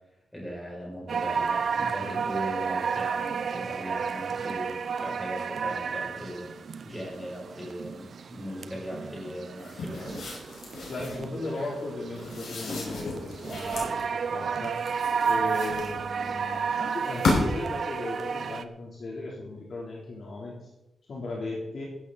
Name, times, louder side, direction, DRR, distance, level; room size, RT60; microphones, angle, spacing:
voice 1, 0.3-6.5 6.8-10.2, equal, 5° left, -3 dB, 6.6 m, -38 dB
sound 1, 1.1-18.6, right 6 dB, 55° right, 0.7 m, -32 dB
sound 2, 9.6-11.3 12.1-14.0 14.6-16.2 16.9-17.7, left 3 dB, 75° left, 5.4 m, -32 dB
voice 2, 10.9-14.9 15.2-20.5 21.1-21.8, left 2 dB, 50° left, -3 dB, 3.4 m, -36 dB
15.0 x 12.5 x 4.1 m, 0.91 s
wide cardioid pair, 165°, 0 cm